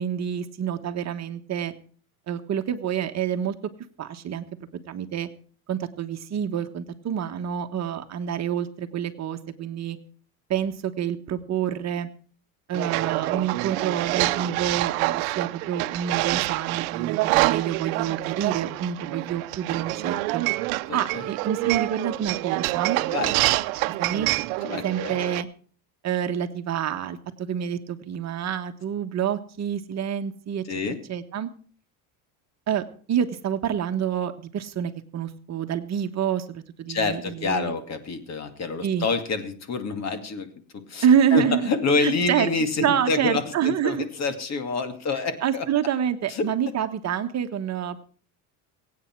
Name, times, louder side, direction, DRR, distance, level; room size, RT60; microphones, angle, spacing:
voice 1, 0.0-1.7 2.3-3.5 4.0-4.4 4.8-5.3 5.7-10.0 10.5-12.1 12.7-20.4 20.9-23.0 24.0-24.3 24.8-25.5 26.0-30.6 31.1-31.5 32.7-32.8 33.1-37.7 38.8-39.1 41.0-41.7 42.0-42.5 42.8-44.1 45.4-48.0, right 9 dB, 40° right, 7 dB, 1.3 m, -27 dB
sound 1, 12.7-25.4, right 20 dB, 85° right, 0.8 m, -26 dB
voice 2, 20.9-21.2 23.1-23.4 24.6-25.2 30.7-31.0 36.9-41.1 41.3-45.7 46.3-46.5, left 4 dB, 40° left, 9 dB, 2.4 m, -27 dB
23.5 x 8.6 x 4.6 m, 0.43 s
supercardioid pair, 115°, 41 cm